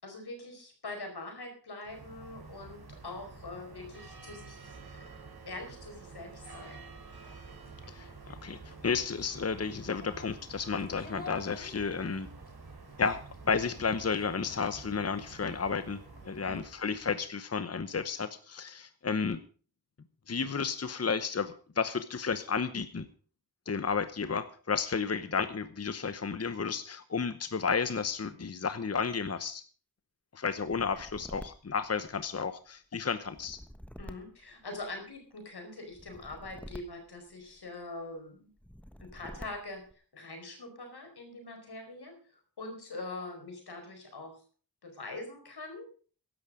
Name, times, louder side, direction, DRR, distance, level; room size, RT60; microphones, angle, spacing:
voice 1, 0.0-4.8 5.5-6.9 16.4-16.6 34.0-38.5 39.0-39.8 40.1-44.3 44.8-45.9, left 2 dB, 90° left, 4 dB, 4.9 m, -43 dB
sound 1, 1.8-17.3, right 4 dB, 75° right, 3.5 m, -49 dB
sound 2, 7.4-16.6, left 2 dB, 25° left, 3.8 m, -54 dB
voice 2, 7.9-12.3 13.0-16.0 16.2-19.4 20.3-23.1 23.7-29.6 30.3-33.6, left 5 dB, 40° left, 11 dB, 0.9 m, -32 dB
sound 3, 30.6-32.6 33.2-35.2 35.9-37.8 38.6-39.9, equal, 5° left, 1.3 m, -49 dB
15.5 x 11.5 x 5.0 m, 0.41 s
wide cardioid pair, 75°, 38 cm